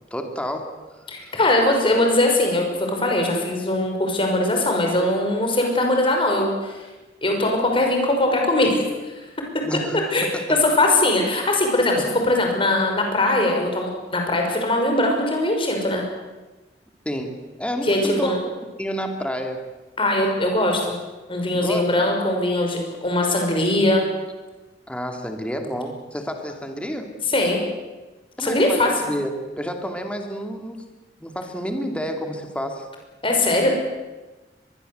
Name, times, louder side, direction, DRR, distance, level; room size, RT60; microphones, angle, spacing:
voice 1, 0.1-1.1 9.6-10.6 12.0-12.1 17.0-18.3 18.8-19.7 21.5-21.8 24.9-27.1 28.4-30.9 31.2-32.9, equal, 5° left, 4 dB, 2.7 m, -30 dB
voice 2, 1.1-6.8 7.2-8.8 10.1-10.3 10.6-16.0 17.8-18.4 20.0-20.9 21.3-24.1 27.3-27.6 28.4-28.9 33.2-33.7, left 1 dB, 30° left, 2 dB, 5.9 m, -21 dB
23.5 x 21.5 x 8.1 m, 1.1 s
head